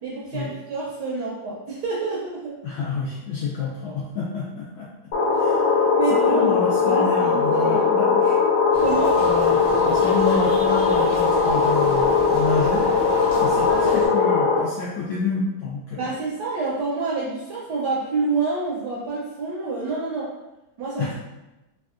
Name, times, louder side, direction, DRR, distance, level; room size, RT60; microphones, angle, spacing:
voice 1, 0.0-2.5 5.9-6.5 6.8-7.9 8.7-9.2 16.0-20.3 20.8-21.1, right 4 dB, 75° right, -5 dB, 1.0 m, -27 dB
voice 2, 2.6-4.9 5.4-5.7 6.3-8.4 9.2-12.9 13.4-16.1 21.0-21.1, left 4 dB, 85° left, -6 dB, 0.8 m, -29 dB
sound 1, 5.1-14.6, left 5 dB, 65° left, 1.3 m, -19 dB
sound 2, 8.7-14.1, equal, 45° left, 0.9 m, -35 dB
3.4 x 2.3 x 2.4 m, 0.99 s
omnidirectional pair, 2.2 m